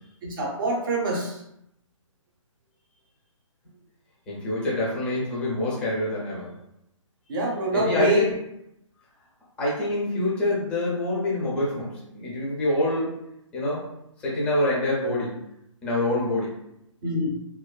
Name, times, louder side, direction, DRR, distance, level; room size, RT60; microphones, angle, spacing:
voice 1, 0.2-1.4 7.3-8.3 17.0-17.3, right 2 dB, 40° right, -1 dB, 0.6 m, -25 dB
voice 2, 4.3-6.5 7.7-8.3 9.6-13.2 13.5-13.9 14.2-15.4 15.8-16.6, left 2 dB, 5° left, -6 dB, 0.4 m, -26 dB
2.4 x 2.2 x 2.2 m, 0.79 s
hypercardioid pair, 150°, 17 cm